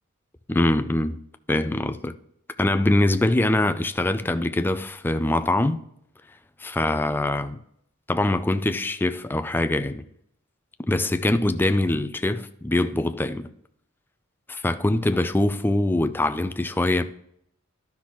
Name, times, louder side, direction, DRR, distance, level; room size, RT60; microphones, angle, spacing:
voice 1, 0.5-1.2 1.5-2.1 2.6-5.8 6.8-7.6 8.1-10.0 10.9-13.5 14.5-17.0, left 1 dB, 10° left, 0.3 m, -23 dB
12.0 x 5.9 x 3.1 m
head